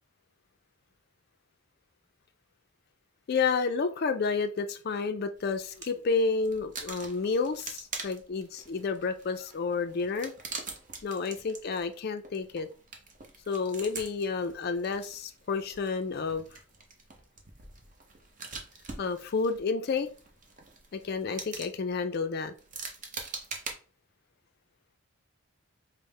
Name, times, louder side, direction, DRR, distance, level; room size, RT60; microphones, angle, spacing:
voice 1, 3.3-10.3 11.0-12.7 13.5-16.5 19.0-20.1 20.9-22.5, left 4 dB, 45° left, 9 dB, 0.3 m, -30 dB
sound 1, 5.4-6.0 6.3-23.7, right 4 dB, 35° right, 0.6 m, -44 dB
5.2 x 2.0 x 3.2 m, 0.38 s
head